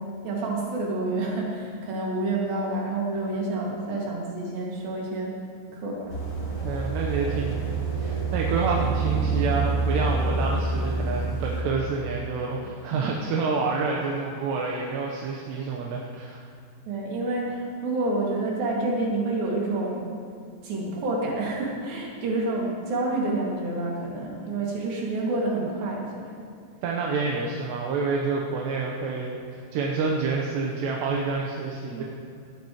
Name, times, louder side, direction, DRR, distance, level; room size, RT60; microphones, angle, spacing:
voice 1, 0.2-5.4 5.7-6.1 16.9-20.1 20.6-26.1 26.4-26.5 31.9-32.0, right 2 dB, 60° right, -3 dB, 3.8 m, -28 dB
sound 1, 6.1-11.6, right 3 dB, 25° left, 3.3 m, -27 dB
voice 2, 6.6-16.5 26.8-32.0, right 4 dB, 75° right, -1 dB, 3.0 m, -28 dB
18.0 x 13.0 x 3.1 m, 2.5 s
omnidirectional pair, 5.1 m